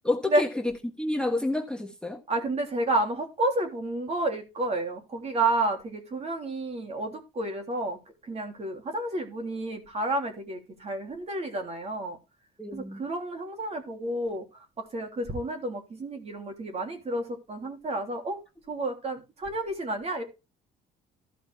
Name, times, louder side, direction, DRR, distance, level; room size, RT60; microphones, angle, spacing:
voice 1, 0.0-0.5 1.0-2.2 12.6-13.0, left 2 dB, 5° left, 1.3 m, -29 dB
voice 2, 2.3-8.0 8.2-12.2 12.7-18.4 18.7-20.2, right 2 dB, 40° right, 3.2 m, -30 dB
14.0 x 5.1 x 4.7 m
cardioid pair, 110°, 17 cm